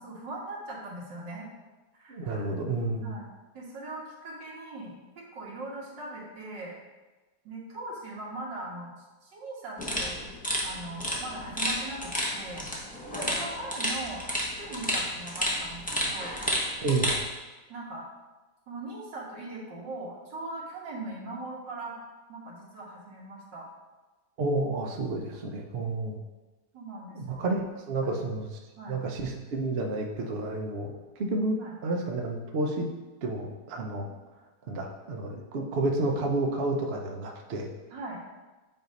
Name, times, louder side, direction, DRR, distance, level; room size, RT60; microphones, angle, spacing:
voice 1, 0.0-1.5 2.0-2.5 3.0-3.2 3.5-6.7 7.4-10.2 10.6-12.7 13.3-14.2 14.6-16.3 17.7-18.1 18.7-22.0 22.3-23.7 26.7-27.4 28.0-28.1 28.8-29.0 31.6-31.7 34.0-34.1 37.9-38.2, right 2 dB, 90° right, -4 dB, 2.1 m, -40 dB
voice 2, 2.1-3.1 16.8-17.1 24.4-26.2 27.2-28.5 28.9-30.9 31.2-32.9 33.2-34.1 34.7-37.7, right 2 dB, 55° right, 2 dB, 0.7 m, -30 dB
sound 1, 9.8-17.2, equal, 10° left, 0.6 m, -31 dB
7.7 x 2.7 x 5.2 m, 1.2 s
omnidirectional pair, 1.9 m